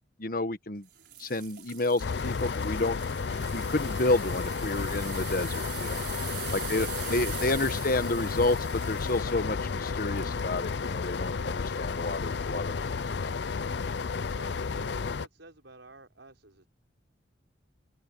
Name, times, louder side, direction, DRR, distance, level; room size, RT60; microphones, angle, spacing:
voice 1, 0.2-0.9 1.2-3.0 3.5-6.0 6.5-8.6 8.9-13.4, left 2 dB, 50° left, 1.3 m, -30 dB
sound 1, 0.9-10.8 11.3-11.6 12.1-12.2, right 13 dB, 60° right, 5.5 m, -43 dB
sound 2, 2.0-15.3, left 5 dB, 70° left, 0.5 m, -32 dB
voice 2, 6.5-7.6 14.3-16.7, right 2 dB, 85° right, 5.9 m, -52 dB
open air
head